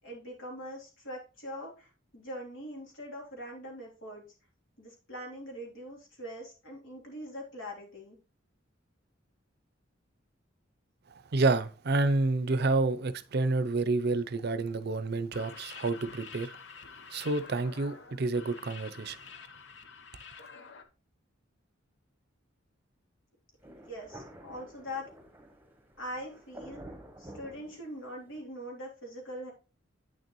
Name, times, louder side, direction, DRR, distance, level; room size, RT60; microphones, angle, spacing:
voice 1, 0.0-4.2 4.8-8.2 23.6-25.1 26.0-29.5, equal, 80° left, 3.3 m, -42 dB
voice 2, 11.1-16.6 17.1-19.2, right 3 dB, 55° right, 0.6 m, -29 dB
sound 1, 15.2-20.8, left 5 dB, 65° left, 0.9 m, -48 dB
Thunder, 23.6-28.4, right 1 dB, 10° right, 0.9 m, -50 dB
8.9 x 6.6 x 3.0 m
head